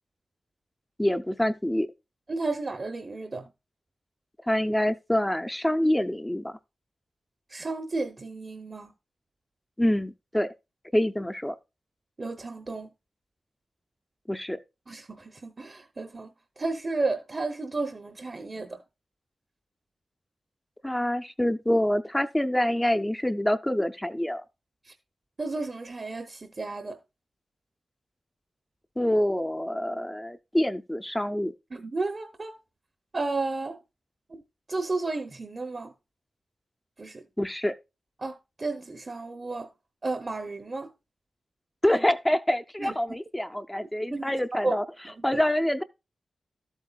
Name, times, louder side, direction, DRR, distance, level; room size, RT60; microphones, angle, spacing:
voice 1, 1.0-1.9 4.5-6.5 9.8-10.5 10.9-11.6 14.3-14.6 20.8-24.4 29.0-31.5 37.4-37.7 41.8-44.8 45.2-45.8, left 1 dB, 10° left, 0.5 m, -26 dB
voice 2, 2.3-3.5 7.5-8.9 12.2-12.9 14.9-18.8 24.8-24.9 25.4-27.0 31.7-32.5 33.1-33.8 34.3-34.4 34.7-35.9 37.0-37.2 38.2-39.7 40.0-40.9 42.8-43.1 44.1-44.8 45.3-45.4, right 3 dB, 30° right, 0.8 m, -33 dB
13.0 x 8.0 x 2.3 m
wide cardioid pair, 150°, 0 cm